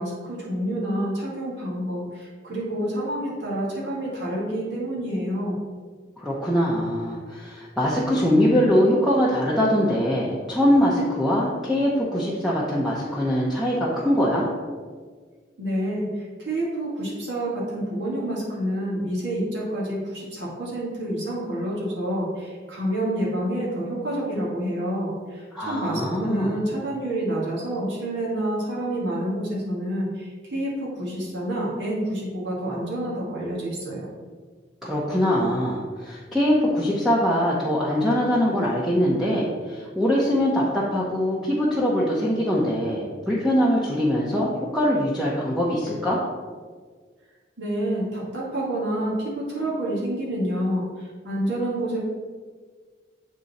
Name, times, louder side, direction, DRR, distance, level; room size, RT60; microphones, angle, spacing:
voice 1, 0.0-5.6 15.6-34.1 47.6-52.0, right 1 dB, 80° right, -6 dB, 1.8 m, -28 dB
voice 2, 6.2-14.5 25.5-26.6 34.8-46.2, equal, ahead, -6 dB, 0.8 m, -22 dB
8.0 x 3.8 x 4.1 m, 1.5 s
head